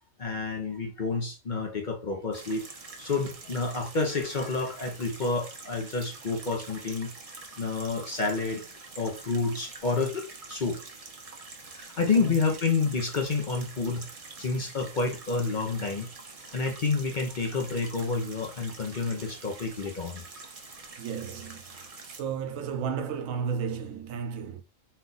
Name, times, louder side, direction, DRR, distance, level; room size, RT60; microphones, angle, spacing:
voice 1, 0.2-2.6 3.0-7.1 7.6-8.6 9.0-10.8 11.7-14.1 14.4-16.1 16.5-20.2, left 4 dB, 45° left, 0.7 m, -29 dB
sound 1, 2.3-22.2, right 3 dB, 35° right, 0.6 m, -46 dB
voice 2, 21.0-24.6, right 6 dB, 85° right, 1.1 m, -33 dB
4.2 x 2.4 x 3.9 m
omnidirectional pair, 1.4 m